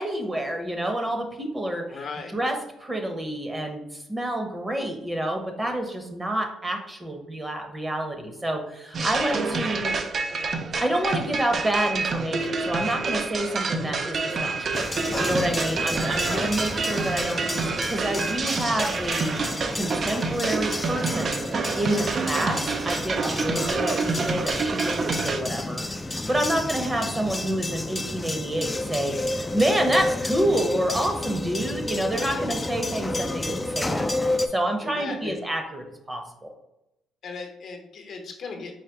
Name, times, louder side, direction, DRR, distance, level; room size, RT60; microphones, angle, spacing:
voice 1, 0.0-2.0 2.3-9.9 10.8-14.9 15.2-19.3 19.7-21.4 21.8-25.8 26.1-36.5, right 1 dB, 20° right, 4 dB, 0.8 m, -28 dB
voice 2, 1.9-2.3 16.2-16.6 32.0-32.6 34.4-34.5 34.8-35.3 37.2-38.7, left 4 dB, 60° left, 3 dB, 0.8 m, -37 dB
sound 1, 8.9-25.4, right 4 dB, 45° right, 0.4 m, -28 dB
sound 2, 14.7-34.5, left 2 dB, 15° left, 0.4 m, -31 dB
4.9 x 2.2 x 4.5 m, 0.88 s
cardioid pair, 90°, 0 cm